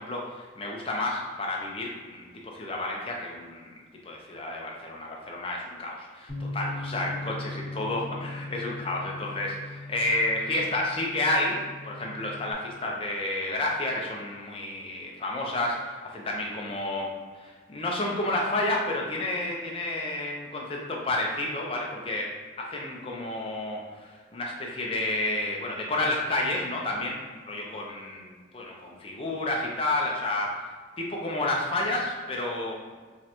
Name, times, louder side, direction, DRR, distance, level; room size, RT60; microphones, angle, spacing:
voice 1, 0.0-3.7 4.0-17.1 17.4-22.3 22.6-30.7 31.0-32.8, left 2 dB, 30° left, -1 dB, 0.5 m, -30 dB
Bass guitar, 6.3-12.5, left 2 dB, 45° left, 1.1 m, -39 dB
3.7 x 3.1 x 2.9 m, 1.5 s
head